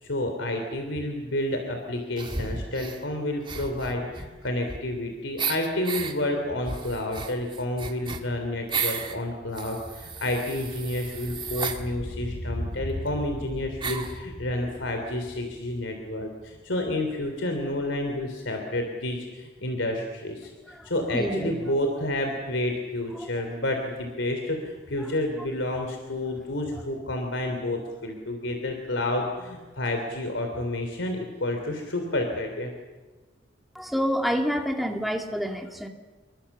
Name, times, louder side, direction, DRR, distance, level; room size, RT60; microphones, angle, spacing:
voice 1, 0.0-32.7, left 1 dB, 75° left, 4 dB, 3.3 m, -30 dB
sound 1, 2.2-3.0 3.4-5.0 5.4-6.1 6.6-9.2 9.5-11.8 12.7-12.8 13.0-13.1 13.8-14.2, right 5 dB, 25° right, 2.1 m, -33 dB
sound 2, 7.5-16.8 17.1-17.2, equal, 50° left, 6.2 m, -40 dB
voice 2, 20.8-21.5 33.8-35.9, equal, ahead, 2 dB, 2.3 m, -28 dB
27.0 x 23.0 x 7.3 m, 1.3 s
head